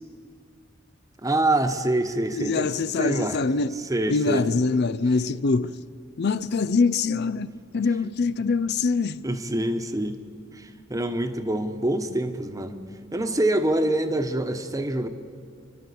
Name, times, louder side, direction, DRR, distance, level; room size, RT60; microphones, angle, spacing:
voice 1, 1.2-3.4 3.9-4.6 9.2-10.2 10.5-12.8 13.1-15.1, right 1 dB, 15° right, 1.1 m, -25 dB
voice 2, 2.3-3.7 4.1-5.7 6.2-9.2, left 4 dB, 55° left, 0.5 m, -24 dB
29.0 x 12.0 x 8.5 m
head